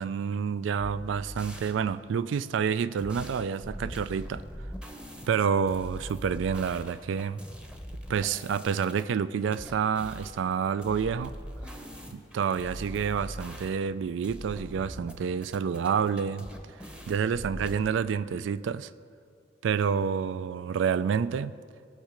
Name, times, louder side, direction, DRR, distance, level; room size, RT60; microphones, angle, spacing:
voice 1, 0.0-4.4 5.3-7.4 8.1-11.3 12.1-16.5 17.1-18.9 19.6-21.6, right 7 dB, 85° right, 0.3 m, -28 dB
sound 1, 1.4-1.8 3.0-5.3 5.7-9.0 9.5-10.3 10.8-14.0 14.2-15.1 15.4-17.8, equal, 5° right, 0.7 m, -42 dB
18.5 x 6.4 x 5.1 m
head